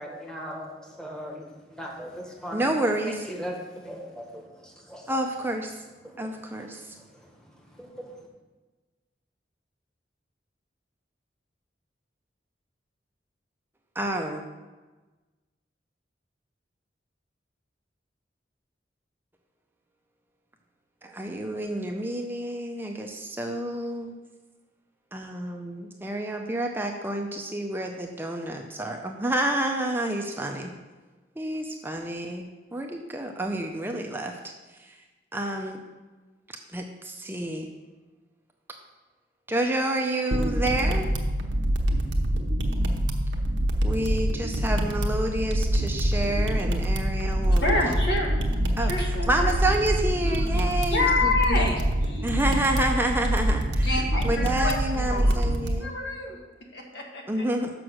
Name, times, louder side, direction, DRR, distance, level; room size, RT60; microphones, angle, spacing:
voice 1, 0.0-5.1 6.0-8.3, equal, 5° left, -1 dB, 1.3 m, -40 dB
voice 2, 2.5-3.1 5.1-5.7 6.2-6.8 14.0-14.4 21.0-24.1 25.1-30.7 31.4-34.3 35.3-35.8 36.7-37.7 39.5-41.1 43.8-48.0 48.8-48.9 49.3-51.3 52.2-55.9 57.3-57.7, right 1 dB, 10° right, 3 dB, 0.5 m, -29 dB
sound 1, 40.3-55.7, right 1 dB, 90° right, 0.9 m, -25 dB
voice 3, 47.6-48.3 48.8-49.5 50.3-50.6 50.9-52.3 53.8-55.4 55.8-56.4 56.7-57.5, left 2 dB, 65° left, 0 dB, 1.5 m, -28 dB
6.3 x 6.0 x 6.3 m, 1.2 s
head